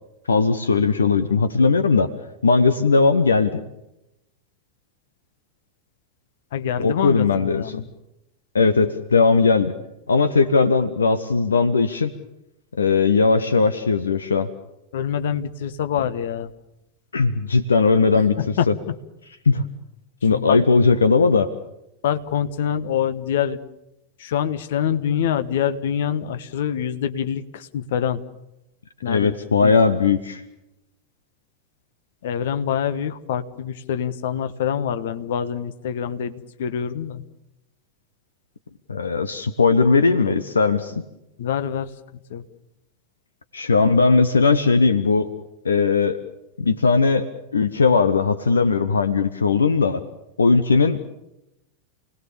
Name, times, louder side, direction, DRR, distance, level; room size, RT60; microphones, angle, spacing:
voice 1, 0.3-2.1 2.4-3.6 6.8-7.8 8.5-9.7 10.1-12.1 12.8-14.5 17.1-18.7 19.5-19.6 20.2-21.5 29.1-30.4 38.9-41.0 43.5-45.3 45.6-46.2 46.6-47.3 47.5-50.0 50.4-51.1, left 4 dB, 75° left, 11 dB, 1.1 m, -18 dB
voice 2, 6.5-7.9 14.9-16.5 18.4-18.9 20.3-20.6 22.0-23.6 24.2-28.2 29.0-29.4 29.6-29.8 32.2-37.2 41.4-41.9 42.3-42.4, left 8 dB, 55° left, 11 dB, 1.4 m, -25 dB
29.0 x 19.5 x 7.1 m, 0.88 s
figure-of-eight pair, 90°, 0 cm